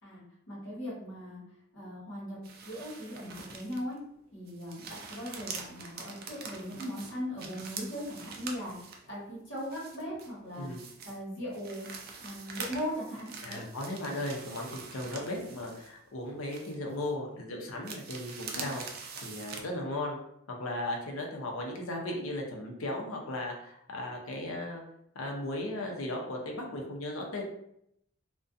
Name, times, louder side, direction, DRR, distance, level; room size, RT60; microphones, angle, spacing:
voice 1, 0.0-1.4 1.7-2.4 2.6-4.0 4.3-10.7 11.0-11.9 12.2-13.6, equal, 60° left, -6 dB, 1.1 m, -39 dB
sound 1, 2.4-4.0 4.4-9.1 9.6-11.2 11.5-16.2 16.5-17.1 17.8-19.6, right 5 dB, 45° right, 0.3 m, -44 dB
voice 2, 13.4-20.2 20.5-24.8 25.1-27.4, left 1 dB, 85° left, 1 dB, 0.6 m, -36 dB
2.4 x 2.2 x 2.5 m, 0.74 s
head